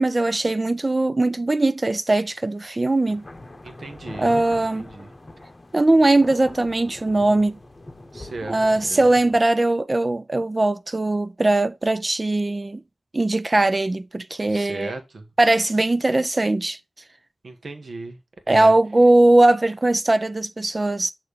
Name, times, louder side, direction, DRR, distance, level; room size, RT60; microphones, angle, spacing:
voice 1, 0.0-3.2 4.2-4.9 5.7-7.6 8.5-12.8 13.1-14.9 15.4-16.8 18.5-21.1, right 2 dB, 35° right, 0.4 m, -20 dB
sound 1, 2.1-2.2 3.0-9.4, left 2 dB, 30° left, 1.0 m, -42 dB
voice 2, 3.6-4.3 4.7-5.1 8.1-9.0 14.5-15.3 17.4-18.2 18.5-18.7, right 2 dB, 70° right, 1.3 m, -36 dB
6.6 x 3.2 x 4.9 m
wide cardioid pair, 70°, 0 cm